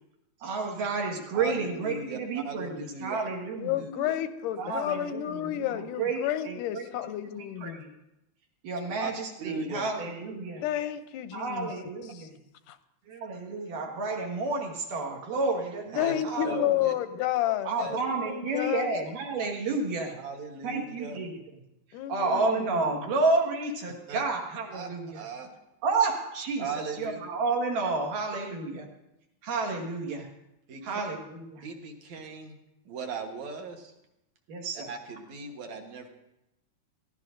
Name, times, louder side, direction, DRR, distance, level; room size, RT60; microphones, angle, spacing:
voice 1, 0.4-3.8 4.6-6.9 7.3-7.9 8.6-10.6 11.3-12.4 13.1-16.6 17.6-20.1 20.6-21.3 22.1-25.2 25.8-28.9 29.4-30.3 30.8-31.6 34.5-34.9, right 3 dB, 85° right, 1 dB, 3.3 m, -31 dB
voice 2, 1.3-3.3 3.8-4.1 9.0-9.1 9.4-9.9 15.9-16.9 17.8-18.0 18.3-18.4 20.2-21.2 24.1-24.2 24.7-25.5 26.6-27.2 30.7-31.0 31.6-32.6 32.9-33.9 34.9-36.1, right 4 dB, 65° right, 3 dB, 2.5 m, -38 dB
voice 3, 3.6-7.8 10.6-11.7 12.1-12.3 12.7-12.8 16.0-18.9 21.9-23.1, left 12 dB, 90° left, 11 dB, 2.2 m, -31 dB
21.0 x 15.0 x 2.6 m, 0.87 s
omnidirectional pair, 3.6 m